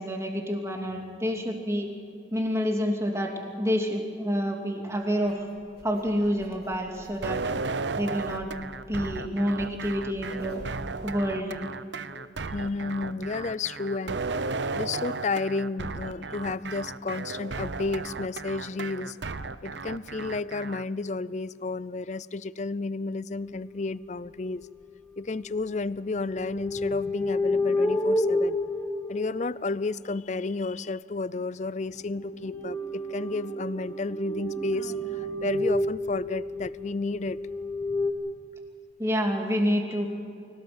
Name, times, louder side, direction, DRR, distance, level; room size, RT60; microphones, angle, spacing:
voice 1, 0.0-1.9 2.3-3.3 3.6-5.4 5.8-7.4 7.9-8.5 8.9-10.6 11.0-11.6 39.0-40.1, equal, 15° right, 2 dB, 2.7 m, -28 dB
sound 1, 4.9-11.0, equal, 60° right, 2.9 m, -50 dB
sound 2, 7.2-20.8, right 4 dB, 75° right, 0.8 m, -34 dB
voice 2, 12.1-14.2 14.7-24.7 25.2-28.6 29.1-37.4, left 3 dB, 40° left, 19 dB, 0.5 m, -32 dB
sound 3, 23.5-23.6 24.3-24.6 25.5-29.9 32.1-38.1, left 1 dB, 15° left, 1.7 m, -30 dB
24.5 x 17.5 x 7.8 m, 2.5 s
head